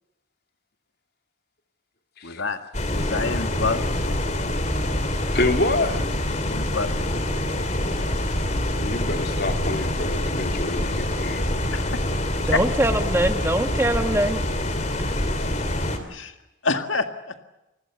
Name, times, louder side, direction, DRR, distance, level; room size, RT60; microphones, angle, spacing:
voice 1, 2.2-2.6 2.9-4.2 6.5-7.2 11.7-12.0 12.5-12.6 16.1-16.4 16.6-17.5, left 3 dB, 75° left, 7 dB, 1.9 m, -27 dB
sound 1, 2.7-16.0, left 1 dB, 35° left, 3.1 m, -26 dB
voice 2, 5.3-6.0 8.8-11.5, left 2 dB, 55° left, 4 dB, 3.3 m, -27 dB
voice 3, 12.4-14.4, right 1 dB, 15° right, 7 dB, 1.3 m, -23 dB
29.0 x 21.0 x 7.1 m, 0.95 s
head